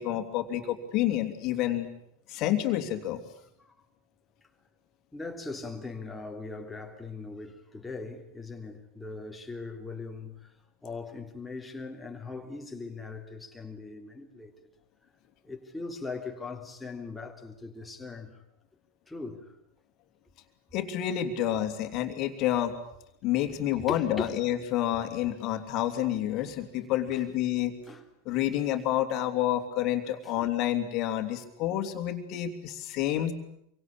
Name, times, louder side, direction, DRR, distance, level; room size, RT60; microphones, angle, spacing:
voice 1, 0.0-1.9 2.3-3.2 20.7-22.7 23.2-27.7 28.2-33.3, left 12 dB, 40° left, 3.1 m, -29 dB
voice 2, 5.1-10.5 10.8-14.5 15.4-18.4 19.1-19.6 23.9-24.3 27.1-27.2 27.9-28.0 30.2-30.5, left 3 dB, 5° left, 3.4 m, -40 dB
27.0 x 24.5 x 8.8 m
figure-of-eight pair, 90°, 0 cm